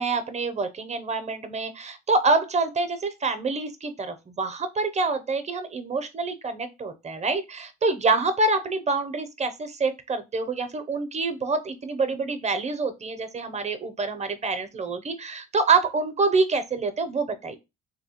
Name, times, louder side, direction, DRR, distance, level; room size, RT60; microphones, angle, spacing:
voice 1, 0.0-17.6, right 3 dB, 25° right, 0.5 m, -26 dB
3.2 x 2.7 x 2.8 m
cardioid pair, 90°, 30 cm